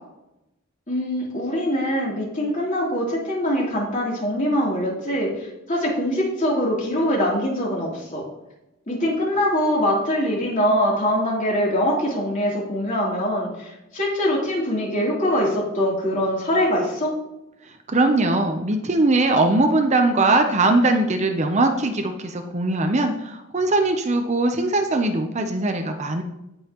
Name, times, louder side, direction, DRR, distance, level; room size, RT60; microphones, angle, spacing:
voice 1, 0.9-8.2 8.9-17.1, equal, 40° left, -4 dB, 3.3 m, -23 dB
voice 2, 17.9-26.2, right 2 dB, 35° right, 5 dB, 0.7 m, -20 dB
16.5 x 5.5 x 3.0 m, 0.90 s
head